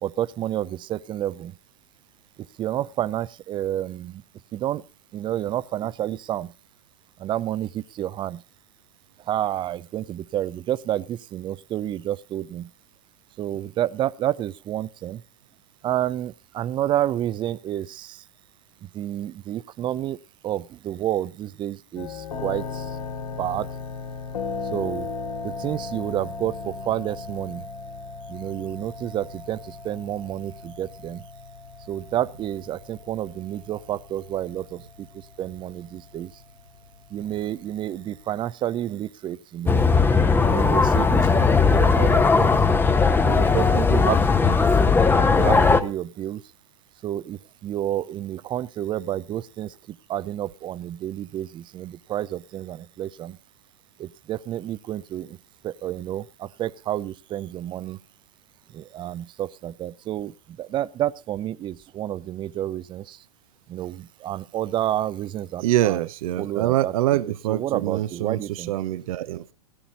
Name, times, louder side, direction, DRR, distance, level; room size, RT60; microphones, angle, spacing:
voice 1, 0.0-1.5 2.6-4.2 4.5-4.8 5.1-6.5 7.2-8.4 9.3-12.7 13.4-15.2 15.8-18.2 18.9-20.2 20.4-22.9 23.4-23.7 24.7-25.1 25.4-27.7 28.3-31.2 31.9-35.1 35.4-36.3 37.1-39.9 40.3-42.5 43.2-44.5 45.3-46.4 47.0-53.4 54.0-55.4 55.6-58.0 58.7-60.3 60.6-63.2 63.7-66.1 66.4-67.2 67.5-68.7, right 12 dB, 25° right, 19 dB, 0.6 m, -29 dB
sound 1, 22.0-38.4, left 4 dB, 75° left, 3.3 m, -37 dB
sound 2, 39.7-45.8, left 4 dB, 10° left, 1.0 m, -18 dB
voice 2, 65.6-69.5, right 14 dB, 60° right, 16 dB, 0.8 m, -25 dB
17.5 x 10.0 x 4.1 m, 0.30 s
hypercardioid pair, 105°, 20 cm